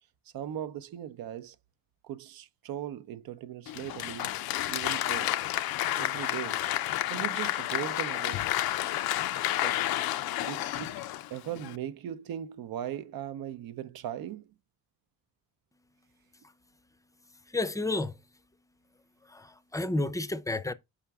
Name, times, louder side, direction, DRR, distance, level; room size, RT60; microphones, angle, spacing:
voice 1, 0.3-1.6 2.0-4.3 4.7-5.4 6.0-6.6 7.1-8.5 9.6-9.9 10.4-11.0 11.3-14.5, right 11 dB, 80° right, 0.6 m, -39 dB
Applause, 3.7-11.8, left 14 dB, 85° left, 0.5 m, -31 dB
voice 2, 17.3-18.2 19.2-20.7, left 2 dB, 10° left, 0.4 m, -32 dB
5.8 x 4.9 x 3.4 m
cardioid pair, 115°, 35 cm